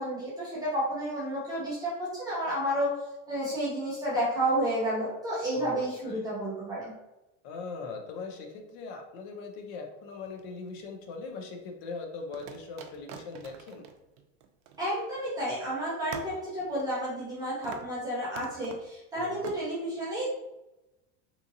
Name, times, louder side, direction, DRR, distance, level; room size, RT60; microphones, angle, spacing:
voice 1, 0.0-2.9 3.3-6.9 14.8-20.2, right 1 dB, 10° right, -9 dB, 0.4 m, -31 dB
voice 2, 5.5-6.3 7.4-13.9 19.1-19.5, left 4 dB, 55° left, 3 dB, 0.5 m, -40 dB
sound 1, 10.3-11.1 12.3-15.3 15.6-15.7 16.1-17.4 17.6-18.0 18.4-18.9 19.4-19.6, right 7 dB, 85° right, 0.5 m, -46 dB
2.7 x 2.6 x 2.6 m, 0.96 s
cardioid pair, 180°, 36 cm